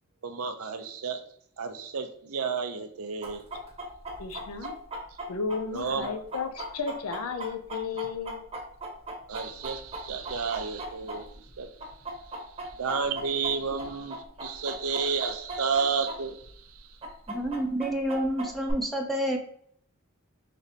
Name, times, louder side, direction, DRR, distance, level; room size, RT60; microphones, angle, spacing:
voice 1, 0.2-1.2 1.6-3.4 5.7-6.1 9.3-11.7 12.2-12.3 12.7-17.0, right 5 dB, 80° right, 7 dB, 0.6 m, -31 dB
Chicken rooster, 3.2-11.5 11.8-16.2 16.4-16.5 17.0-18.7, right 1 dB, 30° right, 0.9 m, -37 dB
voice 2, 4.2-4.7 5.3-8.4, left 5 dB, 85° left, 8 dB, 0.5 m, -33 dB
voice 3, 17.3-19.4, right 1 dB, ahead, 1 dB, 0.5 m, -29 dB
4.1 x 3.1 x 2.7 m, 0.63 s
head